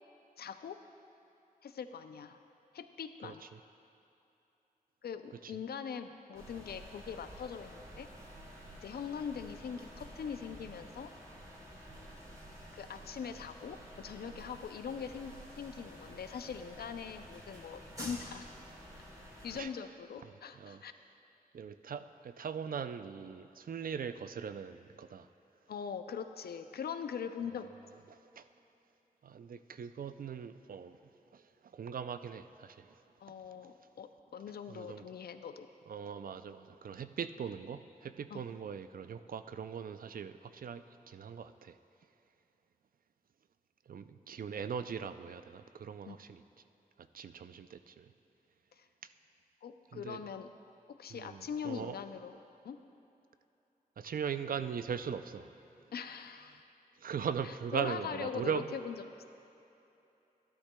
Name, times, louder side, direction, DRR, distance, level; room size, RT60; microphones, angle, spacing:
voice 1, 0.4-0.8 1.6-2.4 2.7-3.4 5.0-8.1 8.8-11.1 12.7-18.4 19.4-20.9 25.7-27.7 33.2-35.7 38.3-38.4 46.1-46.2 48.8-48.9 49.6-50.5 50.9-52.4 52.6-52.8 55.9-56.6 57.7-59.0, left 7 dB, 90° left, 9 dB, 0.4 m, -42 dB
voice 2, 3.2-3.6 5.4-5.6 14.2-14.5 19.5-19.7 20.2-20.8 21.5-25.3 28.1-28.5 29.2-31.0 31.3-31.4 31.7-33.0 34.7-35.0 35.9-41.8 43.9-46.4 47.1-48.1 49.9-50.2 51.1-52.0 54.0-55.6 57.0-58.7, right 7 dB, 65° right, 11 dB, 0.4 m, -40 dB
sound 1, 6.3-19.6, equal, 20° right, 2.2 m, -50 dB
13.0 x 11.5 x 2.2 m, 2.9 s
cardioid pair, 55°, 16 cm